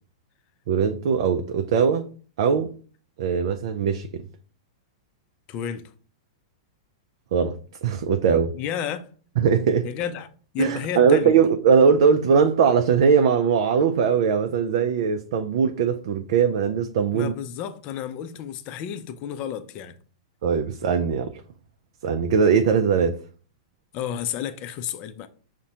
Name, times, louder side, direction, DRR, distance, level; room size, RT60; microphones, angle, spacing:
voice 1, 0.7-2.1 2.4-2.7 3.2-4.2 7.3-8.5 9.4-9.9 10.6-17.3 20.4-21.4 22.0-23.2, right 6 dB, 60° right, 0.4 m, -20 dB
voice 2, 5.5-5.9 8.5-9.1 9.8-10.3 10.5-11.4 17.1-19.9 23.9-25.3, left 9 dB, 40° left, 0.5 m, -31 dB
5.7 x 2.1 x 2.8 m
hypercardioid pair, 115°, 3 cm